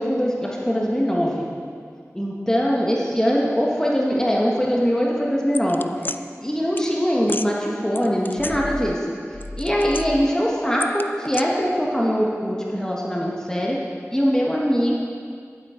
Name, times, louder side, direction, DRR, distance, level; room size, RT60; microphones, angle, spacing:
voice 1, 0.0-1.5 2.1-9.0 9.6-13.8 14.1-14.9, equal, 10° left, -4 dB, 1.3 m, -22 dB
sound 1, 5.5-6.2 6.8-6.9 7.2-7.5 8.0-9.1 9.3-10.3 10.8-11.4, left 2 dB, 40° left, 0.3 m, -31 dB
10.5 x 8.6 x 4.3 m, 2.2 s
wide cardioid pair, 50°, 5 cm